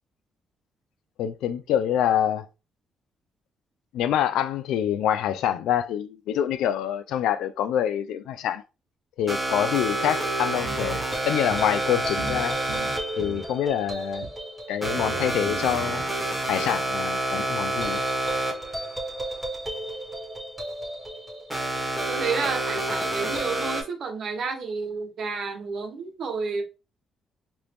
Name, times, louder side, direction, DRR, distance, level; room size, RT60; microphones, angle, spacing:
voice 1, 1.2-2.4 3.9-8.6 9.2-11.0 11.3-12.6 13.2-14.2 14.7-16.0 16.5-18.0, left 10 dB, 85° left, 0.3 m, -26 dB
sound 1, 9.3-23.8, right 1 dB, 10° right, 1.4 m, -29 dB
sound 2, 10.6-11.0 11.5-11.6 12.2-12.4 12.7-13.5 14.2-14.3 14.8-16.0, right 6 dB, 80° right, 0.7 m, -37 dB
voice 2, 22.1-26.6, right 4 dB, 60° right, 0.9 m, -30 dB
2.9 x 2.6 x 3.4 m
cardioid pair, 90°, 0 cm